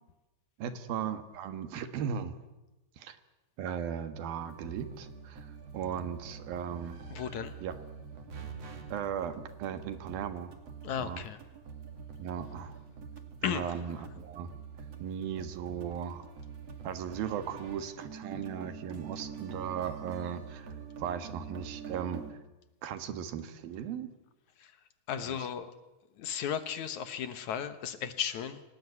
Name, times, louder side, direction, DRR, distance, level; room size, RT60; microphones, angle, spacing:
voice 1, 0.6-2.4 3.0-3.2 3.6-7.0 7.6-7.7 8.9-10.5 11.0-11.2 12.2-12.8 13.4-14.5 15.0-16.3 16.8-20.7 21.0-22.4 22.8-24.1 25.2-25.4, right 8 dB, 85° right, 10 dB, 3.4 m, -37 dB
sound 1, 4.4-22.3, right 6 dB, 45° right, 3.4 m, -46 dB
voice 2, 7.1-7.5 10.8-11.4 13.4-13.7 24.6-24.7 25.1-25.7 26.2-28.6, left 8 dB, 65° left, 11 dB, 2.3 m, -35 dB
26.5 x 18.5 x 9.6 m, 1.0 s
omnidirectional pair, 4.1 m